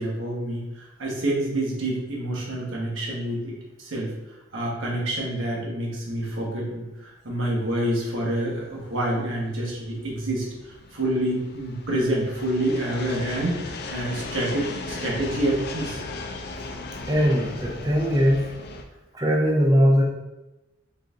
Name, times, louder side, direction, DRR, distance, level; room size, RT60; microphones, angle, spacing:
voice 1, 0.0-4.1 4.5-16.0, right 1 dB, 85° right, -2 dB, 1.2 m, -27 dB
sound 1, 7.9-18.8, left 3 dB, 55° left, 0.4 m, -37 dB
voice 2, 17.1-18.4 19.1-20.0, equal, 20° right, -2 dB, 0.6 m, -20 dB
4.0 x 3.8 x 2.5 m, 0.98 s
head